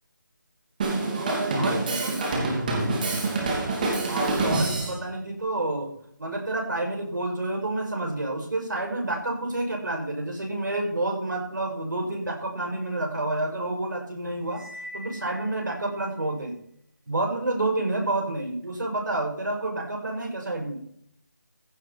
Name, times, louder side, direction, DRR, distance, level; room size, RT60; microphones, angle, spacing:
Drum kit, 0.8-5.0, right 2 dB, 25° right, 2.6 m, -26 dB
voice 1, 0.8-2.4 4.1-5.9 6.2-14.7 14.9-16.5 17.1-20.8, right 2 dB, 70° right, 1 dB, 5.9 m, -29 dB
Cymbal, 14.5-15.9, equal, 5° right, 2.4 m, -43 dB
15.5 x 8.0 x 4.1 m, 0.65 s
figure-of-eight pair, 165°, 10 cm